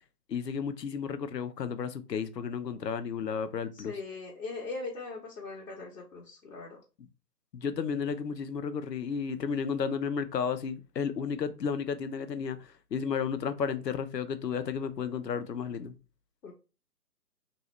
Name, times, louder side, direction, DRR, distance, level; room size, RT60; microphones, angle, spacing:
voice 1, 0.3-3.9 7.0-7.1 7.5-15.9, left 6 dB, 90° left, 0.6 m, -33 dB
voice 2, 3.7-6.8 16.4-16.5, left 3 dB, 60° left, 1.1 m, -40 dB
3.0 x 2.7 x 3.0 m
figure-of-eight pair, 145°, 48 cm